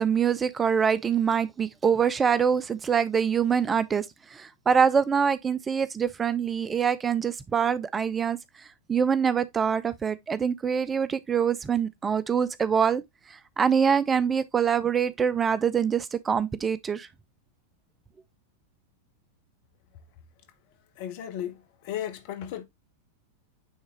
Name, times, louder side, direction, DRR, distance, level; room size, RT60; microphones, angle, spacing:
voice 1, 0.0-13.0 13.3-17.1, right 7 dB, 20° right, 0.4 m, -25 dB
voice 2, 21.0-22.6, left 10 dB, 50° left, 1.2 m, -35 dB
9.3 x 3.4 x 2.9 m
figure-of-eight pair, 90°, 0 cm